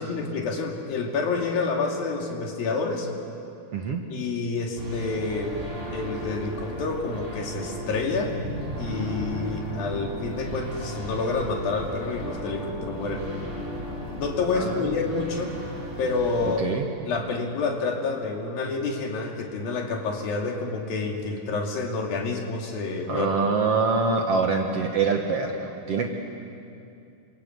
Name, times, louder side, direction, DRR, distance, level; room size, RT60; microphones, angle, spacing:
voice 1, 0.0-3.1 4.1-5.5 5.9-8.3 8.8-13.3 14.1-15.5 16.0-16.6 17.0-23.3, left 4 dB, 75° left, 2 dB, 4.3 m, -28 dB
sound 1, 4.8-16.6, right 1 dB, 15° right, 5.3 m, -35 dB
voice 2, 14.5-15.0 16.4-16.9 23.1-26.1, right 4 dB, 55° right, 3 dB, 2.0 m, -25 dB
28.0 x 26.0 x 8.1 m, 2.5 s
omnidirectional pair, 4.2 m